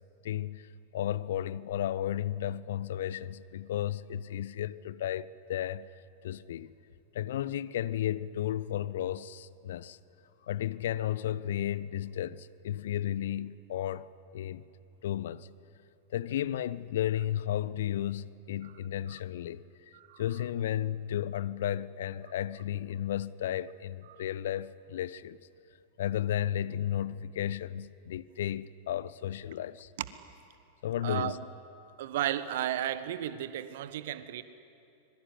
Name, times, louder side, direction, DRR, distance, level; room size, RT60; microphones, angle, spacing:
voice 1, 0.2-5.9 6.2-6.7 7.1-10.0 10.4-14.1 14.3-14.6 15.0-15.5 16.1-25.4 26.0-29.9 30.8-31.4, left 11 dB, 60° left, 0.7 m, -33 dB
voice 2, 31.0-31.4 32.0-34.4, right 12 dB, 55° right, 1.3 m, -34 dB
25.0 x 22.5 x 10.0 m
figure-of-eight pair, 90°, 0 cm